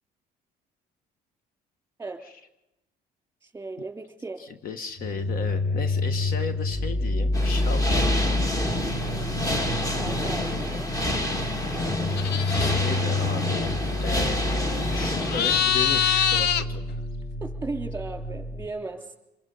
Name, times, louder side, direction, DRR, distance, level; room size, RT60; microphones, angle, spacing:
voice 1, 3.4-4.4 9.1-10.9 17.4-19.2, right 3 dB, 15° right, 3 dB, 3.4 m, -37 dB
voice 2, 4.4-8.2 12.3-13.7 14.0-16.8, left 5 dB, 60° left, 10 dB, 1.3 m, -35 dB
sound 1, 5.0-18.6, left 2 dB, 40° left, 4.6 m, -28 dB
sound 2, 7.3-15.6, left 1 dB, 20° left, 2.2 m, -28 dB
sound 3, 12.1-13.0 15.2-16.6, left 8 dB, 75° left, 0.9 m, -24 dB
26.5 x 22.5 x 5.5 m, 0.94 s
cardioid pair, 110°, 17 cm